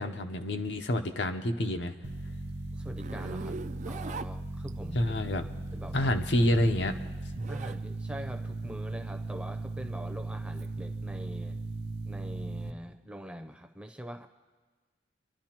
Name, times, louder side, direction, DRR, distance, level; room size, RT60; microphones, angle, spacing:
voice 1, 0.0-1.9 4.9-5.5 5.9-6.9, left 1 dB, 75° left, 5 dB, 0.8 m, -28 dB
sound 1, 2.0-12.7, right 2 dB, 70° right, 0.7 m, -37 dB
voice 2, 2.4-3.6 3.9-5.1 5.7-6.1 7.5-11.6 12.1-14.3, equal, 5° right, 6 dB, 0.6 m, -43 dB
Zipper (clothing), 3.0-5.0 6.2-7.8 8.2-10.7, right 4 dB, 45° right, 0.3 m, -43 dB
27.5 x 11.5 x 3.0 m, 1.4 s
head